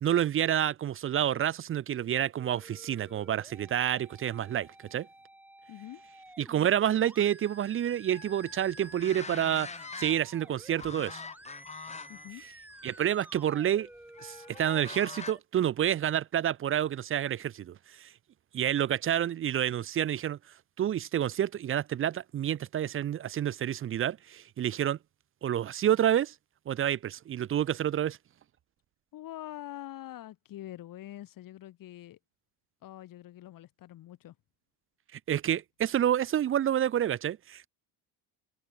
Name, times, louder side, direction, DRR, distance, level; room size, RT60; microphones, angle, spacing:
voice 1, 0.0-5.1 6.4-9.7 10.0-11.2 12.8-13.9 14.2-18.1 18.5-20.4 20.8-25.0 25.4-26.3 26.7-28.2 35.1-37.7, right 10 dB, 30° right, 0.5 m, -29 dB
sound 1, 2.4-15.4, right 1 dB, 5° right, 7.4 m, -52 dB
voice 2, 5.7-6.1 12.1-12.4 29.1-32.2 32.8-34.4, left 13 dB, 55° left, 2.3 m, -44 dB
sound 2, 8.1-10.4 10.8-12.3 12.7-12.9 14.1-15.3, left 4 dB, 15° left, 1.5 m, -44 dB
cardioid pair, 170°, 41 cm